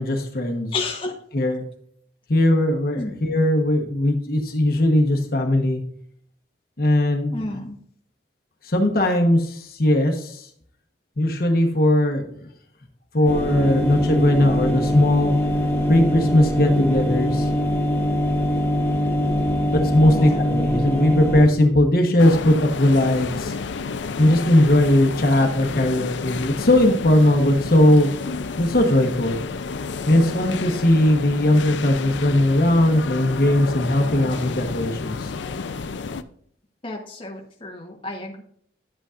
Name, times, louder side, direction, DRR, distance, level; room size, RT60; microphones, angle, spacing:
voice 1, 0.0-0.7 1.3-1.6 2.3-5.8 6.8-7.4 8.6-10.5 11.2-12.2 13.1-15.3 15.9-17.5 19.7-23.6 24.2-28.1 28.6-29.4 30.0-35.3, left 1 dB, 50° left, 3 dB, 1.1 m, -19 dB
voice 2, 0.7-1.2 3.0-3.1 7.3-7.8 20.0-20.4 36.8-38.4, left 3 dB, 30° left, 0 dB, 1.1 m, -31 dB
sound 1, 13.2-21.4, left 1 dB, 10° left, 1.7 m, -22 dB
sound 2, 22.2-36.2, left 4 dB, 75° left, 0.5 m, -30 dB
11.0 x 8.2 x 2.5 m, 0.63 s
head